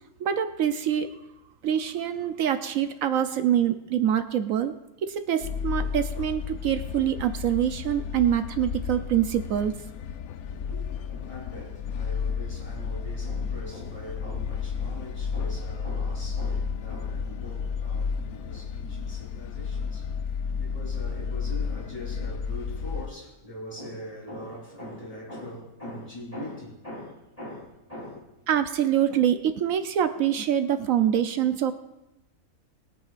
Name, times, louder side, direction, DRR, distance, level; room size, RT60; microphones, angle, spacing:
voice 1, 0.2-1.1 1.6-4.7 5.0-9.7 28.5-31.7, right 10 dB, 75° right, 1.1 m, -25 dB
sound 1, 5.4-23.1, left 6 dB, 85° left, 1.1 m, -32 dB
voice 2, 10.4-28.2, left 1 dB, 25° left, 3.6 m, -42 dB
21.0 x 9.0 x 2.5 m
omnidirectional pair, 1.5 m